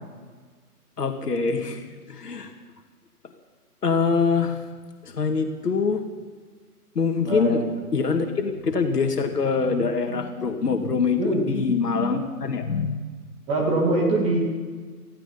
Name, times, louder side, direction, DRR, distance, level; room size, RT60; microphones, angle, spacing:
voice 1, 1.0-2.5 3.8-4.6 5.1-6.0 7.0-7.6 7.9-13.0, left 5 dB, 80° left, 5 dB, 2.0 m, -24 dB
voice 2, 7.3-7.6 11.2-11.4 13.5-14.4, right 2 dB, 15° right, -2 dB, 2.1 m, -23 dB
17.0 x 15.5 x 5.4 m, 1.5 s
hypercardioid pair, 155°, 46 cm